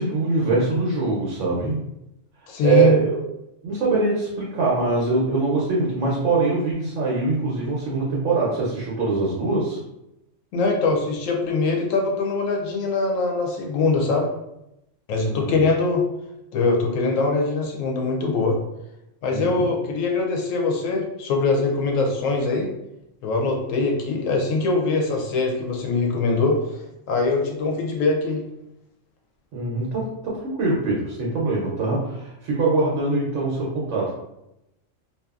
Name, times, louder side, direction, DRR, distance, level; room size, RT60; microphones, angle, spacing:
voice 1, 0.0-1.8 2.6-3.2 3.6-9.8 15.2-15.6 19.3-19.7 29.5-34.2, right 3 dB, 75° right, -4 dB, 1.0 m, -23 dB
voice 2, 2.5-2.9 10.5-14.3 15.1-16.0 16.5-18.6 19.2-22.7 23.2-28.4, left 3 dB, 85° left, 1 dB, 1.0 m, -22 dB
2.7 x 2.4 x 2.3 m, 0.86 s
omnidirectional pair, 1.3 m